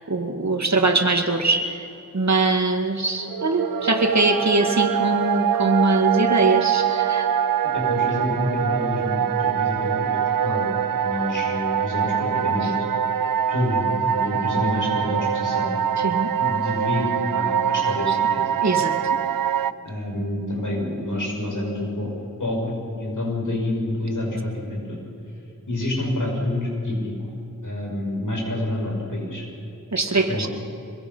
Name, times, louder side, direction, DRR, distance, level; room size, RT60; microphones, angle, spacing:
voice 1, 0.1-1.8 2.1-7.2 16.0-16.3 18.6-19.0 29.9-30.5, right 2 dB, 55° right, 4 dB, 2.2 m, -22 dB
sound 1, 3.2-19.7, right 9 dB, 85° right, 0.5 m, -24 dB
voice 2, 7.7-10.7 11.0-12.8 13.5-15.7 16.4-18.6 19.8-25.0 25.7-27.1 27.6-29.4 30.3-30.5, left 1 dB, 65° left, -1 dB, 6.7 m, -28 dB
25.0 x 22.0 x 5.8 m, 2.7 s
wide cardioid pair, 40°, 33 cm